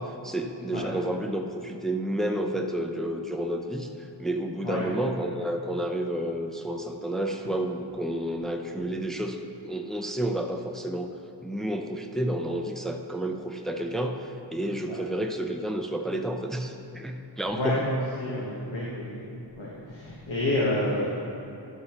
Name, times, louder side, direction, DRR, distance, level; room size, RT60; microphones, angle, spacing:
voice 1, 0.0-3.9 4.2-11.1 11.4-17.8, right 1 dB, ahead, 4 dB, 0.6 m, -30 dB
voice 2, 17.5-19.3 19.6-21.1, left 1 dB, 85° left, -6 dB, 1.4 m, -29 dB
12.0 x 8.4 x 3.0 m, 2.9 s
wide cardioid pair, 50°, 44 cm